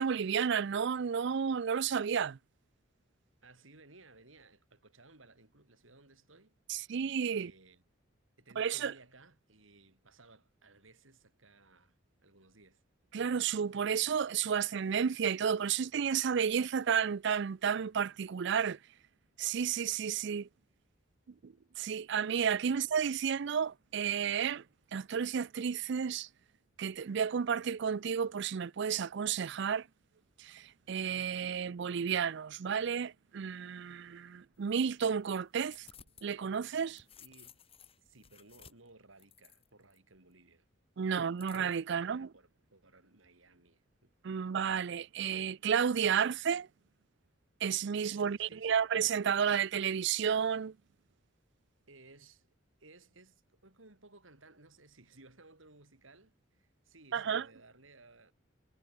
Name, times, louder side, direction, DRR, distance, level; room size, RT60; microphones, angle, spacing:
voice 1, 0.0-2.4 6.7-7.5 8.6-8.9 13.1-18.8 19.4-20.5 21.4-24.6 24.9-26.3 26.8-29.9 30.4-35.9 36.2-37.0 41.0-42.3 44.2-46.7 47.6-50.8 57.1-57.5, right 7 dB, 60° right, 0.4 m, -32 dB
voice 2, 3.4-6.9 7.3-7.8 8.4-12.8 22.7-22.8 37.2-37.6 38.0-40.7 41.9-44.1 48.1-48.8 51.9-52.5 52.8-58.3, right 3 dB, 75° right, 4.4 m, -60 dB
sound 1, 34.5-36.3 36.7-40.0 41.4-41.9, left 7 dB, 30° left, 4.8 m, -58 dB
head